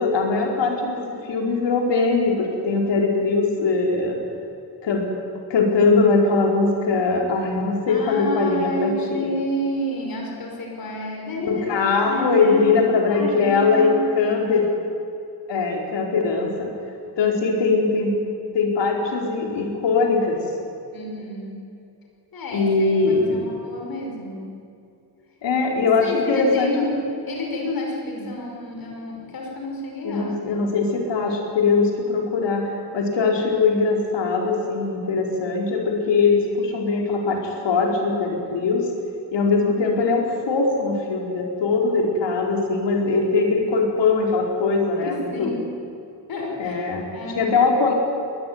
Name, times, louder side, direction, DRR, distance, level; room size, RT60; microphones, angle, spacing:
voice 1, 0.0-4.2 4.8-5.1 5.5-9.3 11.4-14.7 15.5-16.7 17.2-18.1 18.5-20.4 22.5-23.4 25.4-26.9 28.2-28.3 30.0-38.9 39.3-45.5 46.6-47.1 47.3-47.9, left 4 dB, 90° left, 1 dB, 4.8 m, -21 dB
voice 2, 7.9-12.8 13.1-14.0 14.3-14.7 20.9-21.6 22.3-24.4 26.0-27.0 27.3-30.3 45.0-45.6 46.3-47.6, left 1 dB, 55° left, 0 dB, 5.7 m, -30 dB
21.5 x 19.5 x 9.6 m, 2.5 s
wide cardioid pair, 175°, 41 cm